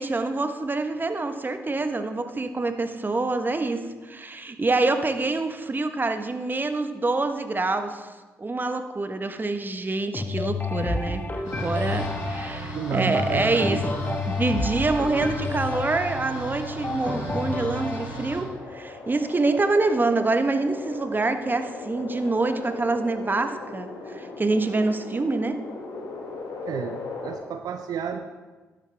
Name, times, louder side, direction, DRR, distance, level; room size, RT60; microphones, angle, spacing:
voice 1, 0.0-8.1 8.4-11.2 11.6-13.8 14.3-25.6, right 3 dB, 25° right, 8 dB, 1.2 m, -26 dB
sound 1, 10.1-18.1, left 3 dB, 25° left, 1.2 m, -30 dB
sound 2, 11.4-18.4, right 1 dB, 80° left, 3.5 m, -36 dB
voice 2, 12.7-14.2 26.6-28.2, right 7 dB, 60° right, 7 dB, 0.6 m, -32 dB
sound 3, 14.7-27.4, left 3 dB, 60° left, 2.1 m, -39 dB
12.5 x 11.5 x 3.4 m, 1.3 s
hypercardioid pair, 40°, 7 cm